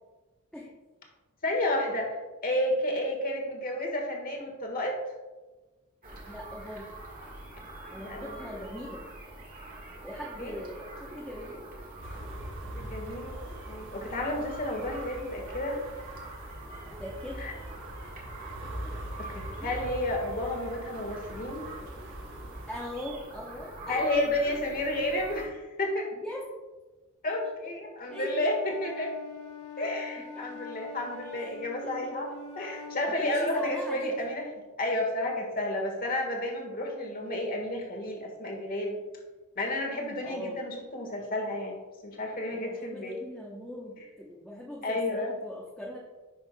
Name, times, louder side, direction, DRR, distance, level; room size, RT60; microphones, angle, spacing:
voice 1, 1.4-5.0 7.9-8.5 10.4-10.5 12.6-13.4 13.7-15.8 17.4-17.5 19.2-21.6 23.9-26.1 27.2-29.1 29.8-34.5 34.8-39.0 39.5-41.8 42.0-43.2 44.8-45.3, left 1 dB, 40° left, 1 dB, 1.4 m, -31 dB
sound 1, 6.0-25.5, right 2 dB, 40° right, 1.5 m, -45 dB
voice 2, 6.1-6.9 7.9-9.0 10.0-11.6 17.0-17.4 19.6-19.8 22.7-24.0 26.2-26.5 28.1-28.5 31.3-31.9 32.6-32.7 33.1-34.1 40.2-40.6 42.5-46.0, left 1 dB, 5° left, -4 dB, 0.8 m, -40 dB
sound 2, 12.0-22.7, right 1 dB, 60° right, 1.2 m, -42 dB
Wind instrument woodwind instrument, 28.0-33.2, left 2 dB, 80° left, 1.1 m, -43 dB
10.5 x 5.6 x 2.2 m, 1.2 s
head